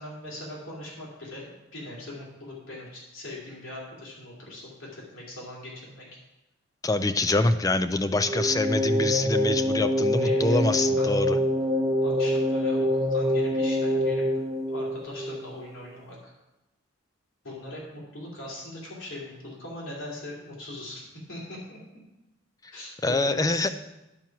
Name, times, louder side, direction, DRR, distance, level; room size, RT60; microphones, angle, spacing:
voice 1, 0.0-6.1 10.1-10.7 11.0-11.2 12.0-14.2 14.7-16.3 17.4-21.8 22.7-23.7, left 1 dB, 75° left, -4 dB, 2.7 m, -40 dB
voice 2, 6.8-11.4 23.0-23.7, left 2 dB, 15° left, 10 dB, 0.3 m, -25 dB
sound 1, 8.2-15.4, left 1 dB, 15° right, 0.7 m, -25 dB
10.5 x 4.6 x 5.8 m, 0.96 s
head